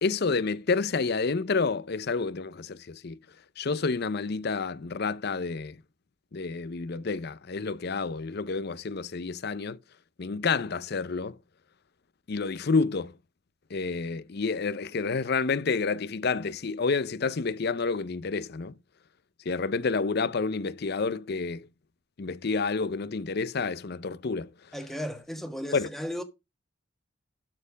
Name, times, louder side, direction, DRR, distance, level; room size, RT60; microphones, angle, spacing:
voice 1, 0.0-3.2 3.6-5.8 6.3-9.8 10.2-11.4 12.3-13.1 13.7-18.7 19.5-21.7 22.2-24.5 25.7-25.9, left 4 dB, 50° left, 0.6 m, -29 dB
voice 2, 24.7-26.2, equal, ahead, 1.5 m, -35 dB
12.0 x 4.4 x 6.3 m
head